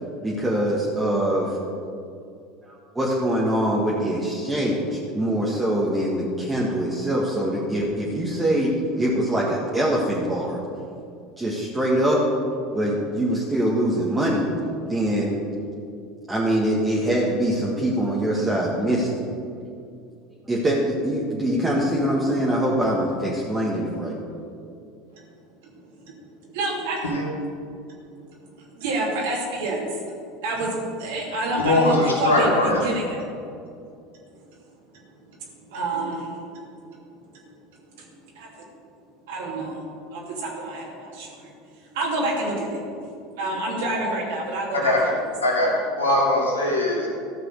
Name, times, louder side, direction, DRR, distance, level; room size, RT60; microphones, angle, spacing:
voice 1, 0.2-1.6 2.7-10.6 11.4-12.2 12.7-14.5 14.8-15.4 16.3-19.1 20.5-24.2, right 1 dB, 15° right, -5 dB, 1.8 m, -23 dB
voice 2, 26.5-27.0 28.7-29.8 30.4-33.2 35.7-36.3 38.3-38.5 39.3-39.8 40.1-41.3 41.9-43.1 43.4-44.9, right 2 dB, 70° right, -3 dB, 2.8 m, -27 dB
voice 3, 31.6-32.8 44.7-45.0 45.4-45.7 46.0-47.1, left 2 dB, 85° left, -3 dB, 2.5 m, -21 dB
14.0 x 6.1 x 6.6 m, 2.5 s
hypercardioid pair, 75°, 0 cm